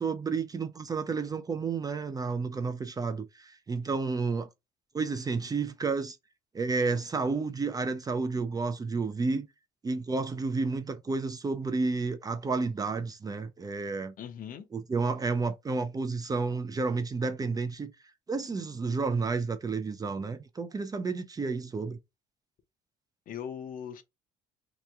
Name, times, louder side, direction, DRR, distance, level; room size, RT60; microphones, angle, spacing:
voice 1, 0.0-4.5 4.9-6.2 6.5-9.5 9.8-14.1 14.7-17.9 18.3-22.0, right 4 dB, 20° right, 0.4 m, -31 dB
voice 2, 14.2-14.7 23.3-24.0, left 8 dB, 55° left, 0.6 m, -39 dB
2.9 x 2.2 x 3.5 m
cardioid pair, 110°, 17 cm